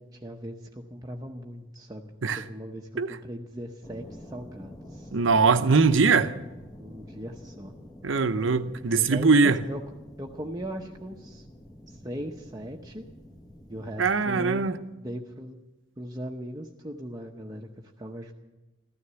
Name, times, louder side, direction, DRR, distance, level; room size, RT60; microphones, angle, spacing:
voice 1, 0.0-5.1 6.8-7.7 9.0-9.8 10.2-11.5 11.9-13.0 13.7-14.7 15.0-15.6 16.0-17.7 18.0-18.3, equal, 20° right, 0.9 m, -39 dB
sound 1, 3.8-14.7, left 1 dB, 20° left, 1.6 m, -47 dB
voice 2, 5.1-6.3 8.0-9.6 14.0-14.8, right 4 dB, 70° right, 0.8 m, -21 dB
15.0 x 13.0 x 6.9 m
head